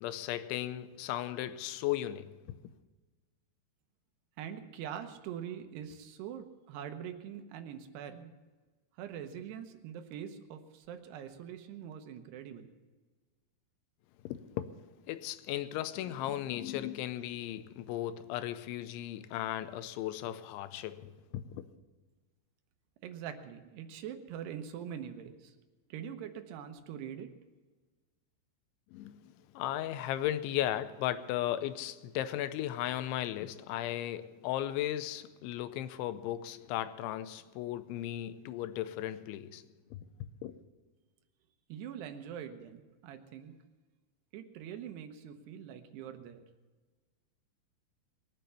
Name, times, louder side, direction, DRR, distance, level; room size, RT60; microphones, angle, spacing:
voice 1, 0.0-2.7 14.2-14.7 15.1-21.7 28.9-39.6 39.9-40.0 40.4-40.5, left 13 dB, 90° left, 3.1 m, -36 dB
voice 2, 4.4-8.3 8.9-12.7 23.0-25.5 25.9-27.3 41.7-43.5 44.3-46.5, right 9 dB, 75° right, 2.9 m, -43 dB
22.0 x 7.7 x 6.9 m
omnidirectional pair, 5.2 m